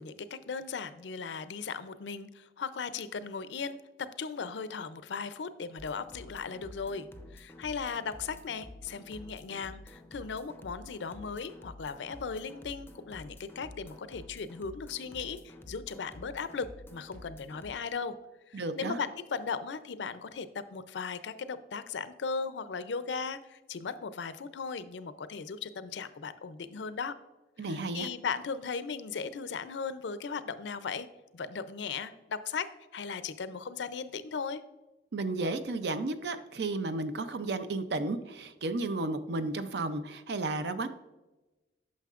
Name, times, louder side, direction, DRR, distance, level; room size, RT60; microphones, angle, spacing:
voice 1, 0.0-7.1 7.3-16.7 16.9-18.1 18.5-27.2 27.7-31.1 31.3-32.7 32.9-34.6, left 5 dB, 80° left, 13 dB, 0.5 m, -37 dB
sound 1, 5.8-17.7, left 1 dB, 15° left, 0.5 m, -50 dB
voice 2, 18.5-19.0 27.6-28.1 35.1-40.9, right 2 dB, 65° right, 11 dB, 0.5 m, -33 dB
9.2 x 6.4 x 2.4 m, 1.1 s
head